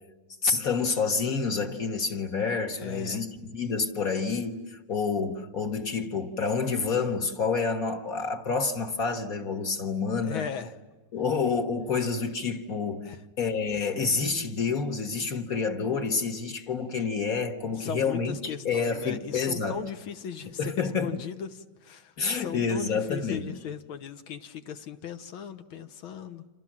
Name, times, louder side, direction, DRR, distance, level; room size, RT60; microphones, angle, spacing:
voice 1, 0.4-10.5 11.1-13.1 13.4-19.8 20.6-21.1 22.2-23.4, left 5 dB, 45° left, 1.9 m, -28 dB
voice 2, 2.7-3.2 10.2-10.7 13.1-13.2 17.8-20.6 21.0-26.4, left 8 dB, 75° left, 2.0 m, -38 dB
30.0 x 26.5 x 7.5 m
omnidirectional pair, 2.3 m